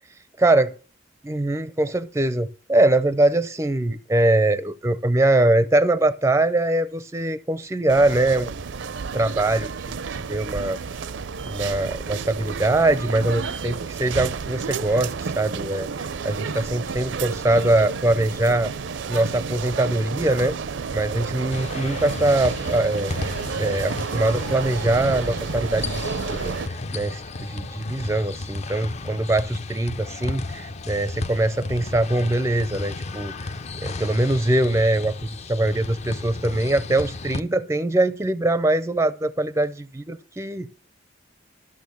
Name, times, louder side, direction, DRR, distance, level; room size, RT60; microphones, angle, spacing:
voice 1, 0.4-0.7 1.2-8.5 9.1-10.0 10.3-10.8 11.5-18.7 19.1-20.6 20.9-23.2 23.6-33.3 33.8-40.7, right 1 dB, 15° right, 0.4 m, -22 dB
sound 1, 7.9-26.7, right 5 dB, 70° right, 0.5 m, -31 dB
sound 2, 21.5-37.4, left 2 dB, 35° left, 0.5 m, -33 dB
12.5 x 6.7 x 6.9 m
head